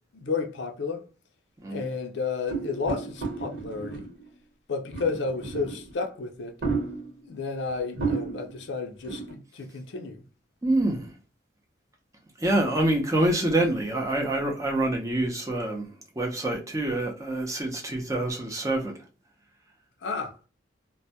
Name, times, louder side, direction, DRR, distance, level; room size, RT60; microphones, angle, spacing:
voice 1, 0.1-1.0 1.7-4.0 4.7-6.5 7.2-10.2 20.0-20.4, left 4 dB, 70° left, 0.5 m, -32 dB
sound 1, 2.5-4.3 4.9-6.0 6.6-7.2 7.7-7.8 8.0-8.6 9.0-9.3, right 4 dB, 70° right, 1.1 m, -32 dB
voice 2, 10.6-11.1 12.4-18.9, right 1 dB, 15° right, 0.6 m, -26 dB
2.2 x 2.1 x 2.7 m
head